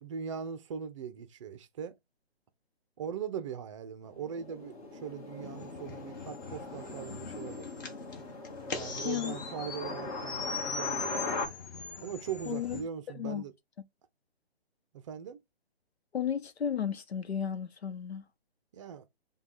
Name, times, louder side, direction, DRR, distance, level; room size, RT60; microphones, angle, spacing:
voice 1, 0.0-2.0 3.0-7.7 8.7-11.2 12.0-13.5 14.9-15.4 18.7-19.1, right 7 dB, 30° right, 0.6 m, -40 dB
sound 1, 4.0-11.5, left 3 dB, 35° left, 1.5 m, -40 dB
sound 2, 5.4-12.8, left 4 dB, 20° left, 0.5 m, -41 dB
voice 2, 9.0-9.3 12.5-12.8 13.1-13.4 16.1-18.2, left 8 dB, 80° left, 0.9 m, -33 dB
5.0 x 2.3 x 4.5 m
hypercardioid pair, 140°, 32 cm